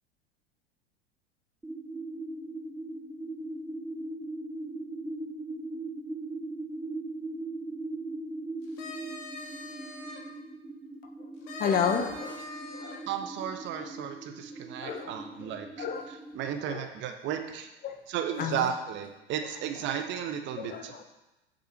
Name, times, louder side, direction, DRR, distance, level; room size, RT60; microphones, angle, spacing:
sound 1, 1.6-16.6, right 2 dB, 5° right, 0.6 m, -40 dB
sound 2, 8.6-10.2 11.5-13.0, left 2 dB, 50° left, 2.2 m, -42 dB
voice 1, 11.6-12.4 12.7-13.0 13.8-13.9 14.8-15.1 15.4-16.1 16.6-16.8 17.8-18.0 18.3-18.7 20.6-21.0, left 7 dB, 25° left, 6 dB, 1.0 m, -32 dB
voice 2, 13.1-15.9 16.3-17.7 18.1-21.0, right 9 dB, 35° right, 6 dB, 1.0 m, -34 dB
8.2 x 6.5 x 5.8 m, 0.99 s
figure-of-eight pair, 85°, 32 cm